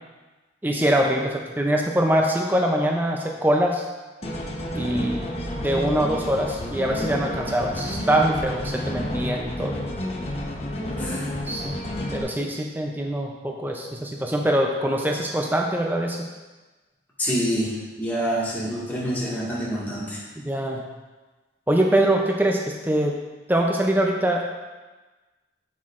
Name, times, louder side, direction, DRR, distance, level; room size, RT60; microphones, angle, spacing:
voice 1, 0.6-3.8 4.7-5.2 5.6-9.8 11.5-11.7 12.1-16.3 20.5-20.8 21.7-23.2 23.5-24.4, right 1 dB, 10° right, 1 dB, 0.5 m, -23 dB
sound 1, 4.2-12.2, left 1 dB, 35° left, 0.9 m, -30 dB
voice 2, 10.9-11.3 17.2-20.2, equal, 10° left, -7 dB, 1.7 m, -27 dB
7.6 x 7.6 x 2.5 m, 1.2 s
head